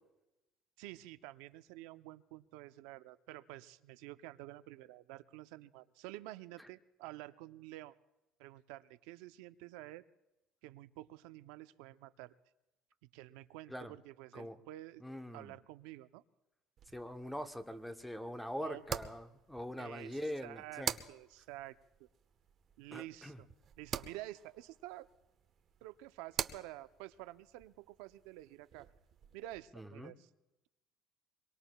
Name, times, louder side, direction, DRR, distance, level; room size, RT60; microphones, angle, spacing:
voice 1, 0.8-7.9 8.4-10.1 10.6-12.3 13.1-15.0 15.3-16.2 18.6-18.8 19.8-22.1 22.8-23.5 23.8-25.1 25.8-28.9 29.3-30.3, right 16 dB, 85° right, 12 dB, 0.5 m, -50 dB
voice 2, 15.0-15.5 16.9-20.9 22.9-23.4 29.8-30.1, equal, 5° left, 7 dB, 0.7 m, -43 dB
sound 1, 16.8-29.6, right 8 dB, 40° right, 0.7 m, -47 dB
24.5 x 22.5 x 2.3 m, 0.98 s
cardioid pair, 140°, 0 cm